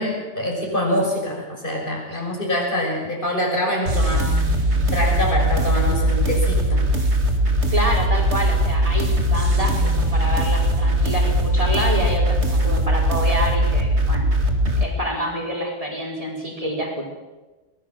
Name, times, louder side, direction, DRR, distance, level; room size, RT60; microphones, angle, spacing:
voice 1, 0.0-4.3 4.9-6.9, equal, 50° left, -1 dB, 6.5 m, -24 dB
sound 1, 3.9-14.8, equal, 85° right, 2.6 m, -20 dB
voice 2, 7.7-14.2 14.8-17.1, equal, 30° right, 0 dB, 4.5 m, -27 dB
23.5 x 18.5 x 7.5 m, 1.2 s
omnidirectional pair, 1.1 m